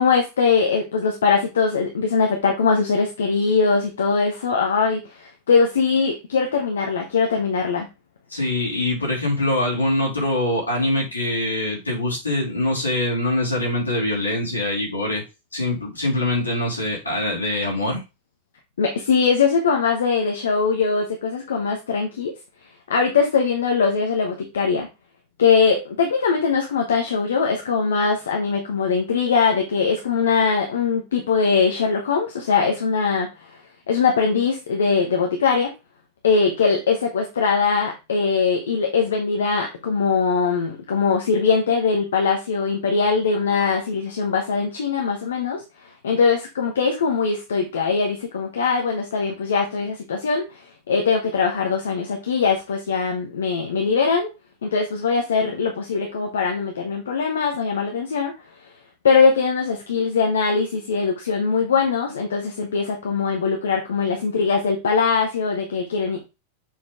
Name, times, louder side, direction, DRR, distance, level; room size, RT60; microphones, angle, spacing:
voice 1, 0.0-7.9 18.8-22.3 22.9-24.9 25.4-33.5 33.9-35.7 36.2-54.3 54.6-58.3 59.0-66.3, left 5 dB, 65° left, 2 dB, 1.2 m, -21 dB
voice 2, 8.3-15.2 15.5-18.0, left 1 dB, 80° left, -2 dB, 3.0 m, -23 dB
7.3 x 4.4 x 3.7 m, 0.27 s
figure-of-eight pair, 90°, 0 cm